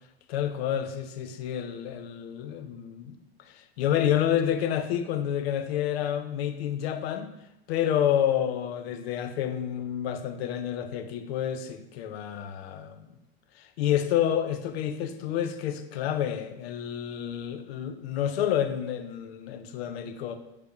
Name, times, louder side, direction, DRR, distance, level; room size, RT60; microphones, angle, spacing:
voice 1, 0.3-7.4 7.7-13.1 13.6-20.3, left 10 dB, 90° left, 0.5 m, -29 dB
6.6 x 3.3 x 2.3 m
supercardioid pair, 105°, 30 cm